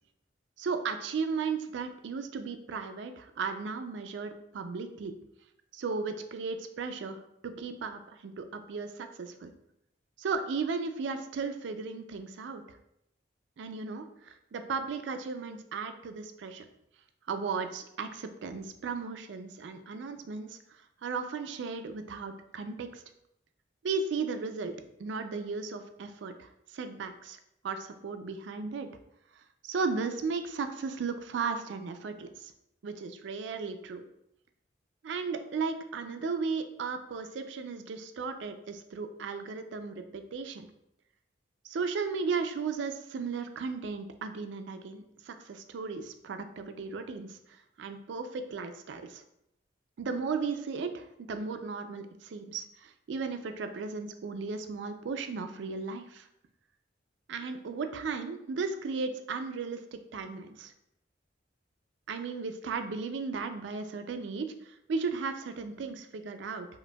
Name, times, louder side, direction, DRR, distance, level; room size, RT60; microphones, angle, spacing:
voice 1, 0.6-5.1 5.7-9.5 10.2-12.6 13.6-16.6 17.3-20.6 21.0-23.0 23.8-28.9 29.6-32.5 32.8-34.0 35.0-40.7 41.6-49.2 50.0-56.3 57.3-60.7 62.1-66.7, right 4 dB, 70° right, 8 dB, 0.4 m, -35 dB
5.0 x 2.6 x 2.2 m, 0.80 s
head